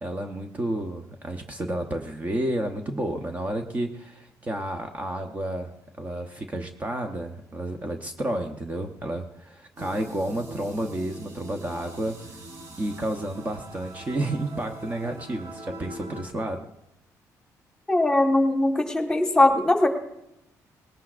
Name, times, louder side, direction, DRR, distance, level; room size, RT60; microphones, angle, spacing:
voice 1, 0.0-5.7 6.0-12.3 12.8-16.7, right 1 dB, 25° right, 4 dB, 0.9 m, -31 dB
sound 1, 9.8-16.2, right 1 dB, 60° right, 3.7 m, -42 dB
voice 2, 17.9-19.9, left 2 dB, 10° left, 3 dB, 1.5 m, -20 dB
19.5 x 17.5 x 2.5 m, 0.87 s
cardioid pair, 135°, 7 cm